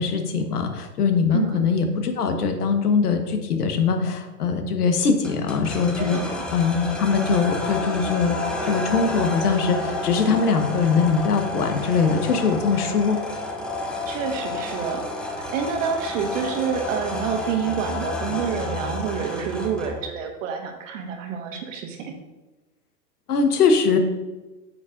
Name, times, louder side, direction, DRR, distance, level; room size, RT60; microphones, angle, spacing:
voice 1, 0.0-6.2 6.5-8.4 8.7-13.2 23.3-24.0, left 5 dB, 70° left, 6 dB, 1.4 m, -22 dB
voice 2, 1.3-1.6 6.0-6.4 14.1-22.1, right 7 dB, 50° right, 4 dB, 1.5 m, -28 dB
sound 1, 5.2-20.1, left 2 dB, ahead, 0.5 m, -30 dB
9.1 x 7.8 x 2.6 m, 1.1 s
figure-of-eight pair, 105°, 48 cm